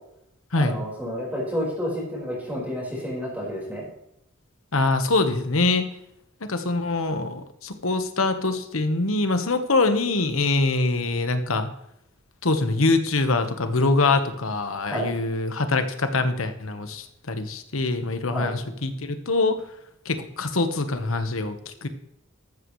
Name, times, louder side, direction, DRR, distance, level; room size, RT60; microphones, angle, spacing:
voice 1, 0.5-3.8 14.9-15.1 18.3-18.6, equal, 10° right, -5 dB, 4.7 m, -30 dB
voice 2, 4.7-5.8 6.4-11.7 12.4-19.6 20.0-21.9, left 3 dB, 85° left, 8 dB, 1.3 m, -24 dB
13.5 x 12.5 x 3.2 m, 0.78 s
head